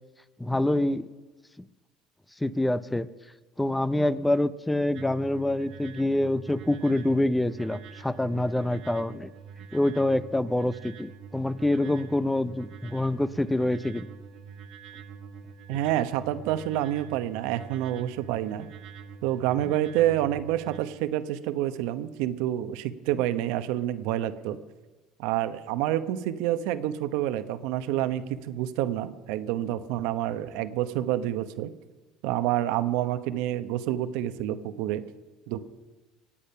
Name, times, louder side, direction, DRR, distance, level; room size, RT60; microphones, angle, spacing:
voice 1, 0.4-1.1 2.4-3.1 3.6-9.3 9.7-14.1 15.7-15.8, left 1 dB, 5° left, 16 dB, 0.6 m, -26 dB
sound 1, 4.9-20.8, right 6 dB, 60° right, 1.6 m, -45 dB
voice 2, 15.7-18.7 19.2-24.6 25.2-31.7 32.2-35.0 35.5-35.6, right 12 dB, 80° right, 11 dB, 0.9 m, -28 dB
22.5 x 8.7 x 5.6 m, 1.2 s
supercardioid pair, 105°, 0 cm